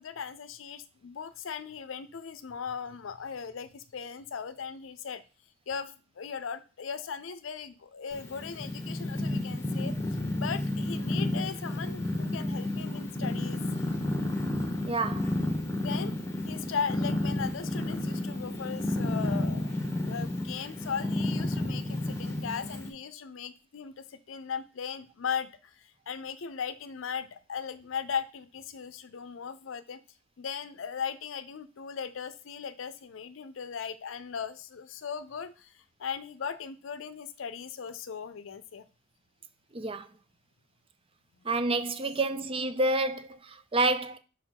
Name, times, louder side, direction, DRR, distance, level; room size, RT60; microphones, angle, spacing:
voice 1, 0.0-5.2 5.7-10.0 10.4-13.6 15.8-16.1 16.5-30.0 30.4-35.7 36.0-38.8, left 6 dB, 80° left, 0.5 m, -38 dB
Purr, 8.1-22.9, left 1 dB, 15° left, 1.2 m, -31 dB
voice 2, 14.9-15.3 39.7-40.1 41.4-44.2, right 2 dB, 30° right, 0.5 m, -29 dB
5.2 x 4.4 x 5.8 m
head